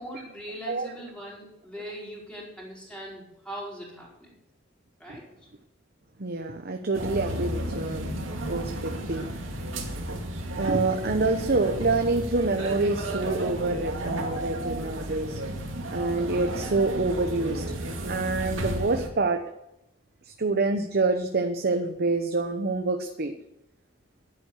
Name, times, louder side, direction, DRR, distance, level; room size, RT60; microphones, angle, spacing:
voice 1, 0.0-4.4 5.0-5.3, equal, 5° left, -4 dB, 4.9 m, -40 dB
voice 2, 6.2-8.1 8.5-9.3 10.6-15.4 15.9-17.6 18.1-19.4 20.3-23.3, right 3 dB, 50° right, 5 dB, 1.0 m, -26 dB
sound 1, 6.9-19.1, right 1 dB, 85° right, 2.3 m, -33 dB
11.0 x 9.3 x 8.4 m, 0.87 s
head